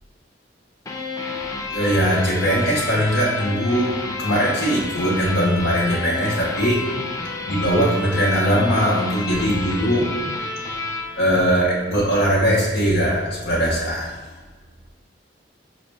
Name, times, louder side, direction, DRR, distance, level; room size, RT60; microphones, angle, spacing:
sound 1, 0.9-12.1, left 3 dB, 20° left, 0.4 m, -30 dB
voice 1, 1.7-3.9 4.2-6.8 7.4-10.1 11.2-14.1, equal, 85° left, -7 dB, 0.8 m, -20 dB
6.1 x 2.0 x 3.3 m, 1.3 s
head